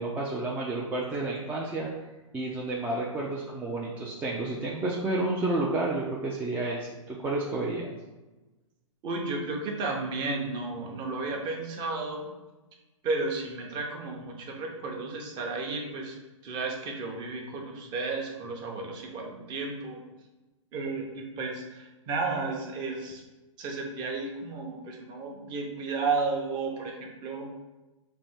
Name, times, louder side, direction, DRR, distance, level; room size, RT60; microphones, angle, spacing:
voice 1, 0.0-1.9 2.3-7.9, right 2 dB, 10° right, -4 dB, 0.4 m, -30 dB
voice 2, 9.0-12.3 13.0-16.1 16.4-20.0 20.7-23.2 23.6-27.5, right 3 dB, 25° right, 1 dB, 0.8 m, -33 dB
3.3 x 2.7 x 4.2 m, 1.1 s
hypercardioid pair, 125°, 17 cm